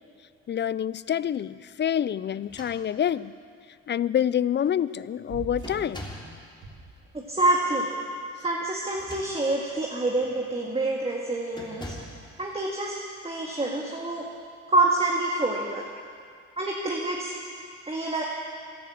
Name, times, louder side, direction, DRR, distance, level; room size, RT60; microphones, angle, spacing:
voice 1, 0.5-3.3 3.9-6.1, left 9 dB, 35° left, 18 dB, 0.4 m, -27 dB
sound 1, 2.4-3.3 4.1-4.2 4.6-5.0 5.6-6.4 8.8-9.7 10.2-10.4 11.5-12.2, equal, 15° left, 3.2 m, -43 dB
sound 2, 5.3-6.0 6.6-7.5, right 4 dB, 75° right, 3.1 m, -41 dB
voice 2, 7.1-7.9 8.4-12.0 12.4-12.9 13.2-14.3 14.7-15.8 16.6-17.3 17.9-18.2, right 2 dB, 20° right, -2 dB, 2.0 m, -26 dB
14.0 x 11.5 x 8.7 m, 2.2 s
cardioid pair, 90°, 30 cm